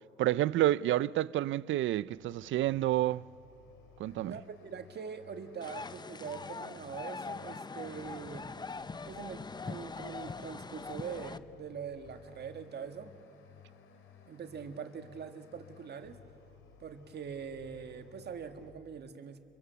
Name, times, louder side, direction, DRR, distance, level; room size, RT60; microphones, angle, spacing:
voice 1, 0.2-3.2 4.0-4.3, right 14 dB, 75° right, 0.5 m, -29 dB
sound 1, 1.8-18.7, left 5 dB, 90° left, 2.9 m, -58 dB
voice 2, 4.2-8.5 9.0-13.1 14.3-16.2 16.8-19.4, right 6 dB, 55° right, 1.9 m, -43 dB
sound 2, 5.6-11.4, left 4 dB, 20° left, 0.7 m, -42 dB
30.0 x 23.0 x 7.0 m
cardioid pair, 90°, 20 cm